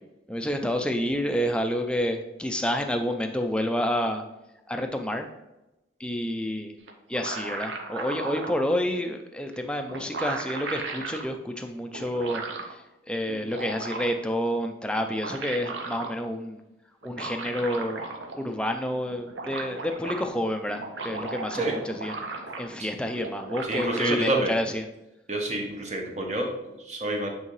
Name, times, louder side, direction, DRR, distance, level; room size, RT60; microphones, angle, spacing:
voice 1, 0.3-4.2 4.7-5.3 6.0-6.7 7.1-16.6 17.0-18.1 18.4-22.1 22.6-24.7, equal, 5° left, 5 dB, 0.4 m, -29 dB
sound 1, 6.9-8.6 9.5-9.6 9.9-11.2 11.9-12.7 13.3-14.3 14.9-16.1 17.0-18.5 18.8-18.9 19.1-20.2 20.7-22.8 23.1-24.2, right 3 dB, 80° right, 0.8 m, -36 dB
voice 2, 23.6-24.6 25.3-27.3, right 1 dB, 35° right, 1 dB, 0.9 m, -28 dB
8.1 x 3.6 x 3.2 m, 0.95 s
head